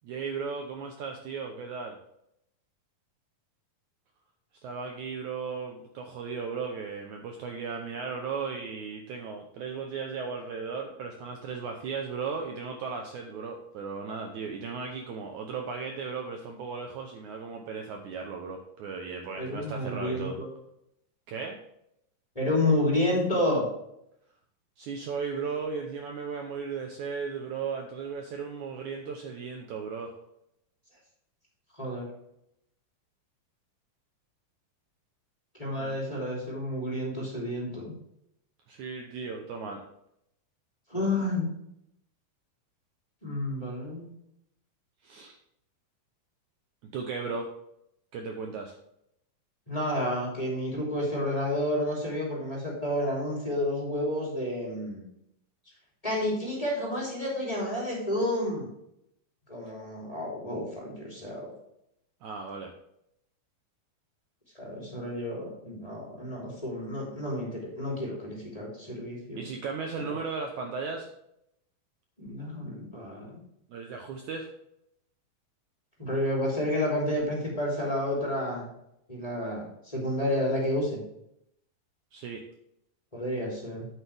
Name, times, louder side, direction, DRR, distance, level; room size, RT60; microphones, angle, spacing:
voice 1, 0.0-2.0 4.6-20.4 21.3-21.6 24.8-30.1 35.8-36.0 38.7-39.8 45.0-45.4 46.8-47.5 48.1-48.8 62.2-62.7 69.4-71.1 73.7-74.5 82.1-82.4, right 5 dB, 70° right, 3 dB, 2.0 m, -36 dB
voice 2, 19.4-20.5 22.3-23.6 31.8-32.0 35.6-37.9 40.9-41.5 43.2-44.1 49.7-55.1 56.0-58.7 59.5-61.5 64.5-69.5 72.2-73.4 76.0-78.7 79.1-81.0 83.1-83.9, left 1 dB, 10° left, -4 dB, 2.6 m, -30 dB
8.9 x 8.7 x 3.5 m, 0.78 s
omnidirectional pair, 4.0 m